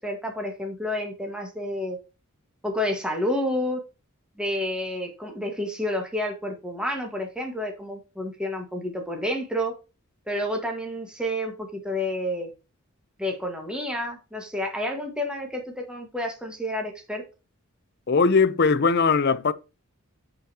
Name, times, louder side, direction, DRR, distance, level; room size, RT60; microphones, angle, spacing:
voice 1, 0.0-2.0 2.6-3.8 4.4-9.7 10.3-12.5 13.2-17.2, left 1 dB, 5° right, 1.5 m, -29 dB
voice 2, 18.1-19.5, left 4 dB, 50° left, 0.6 m, -20 dB
9.3 x 5.0 x 2.8 m
head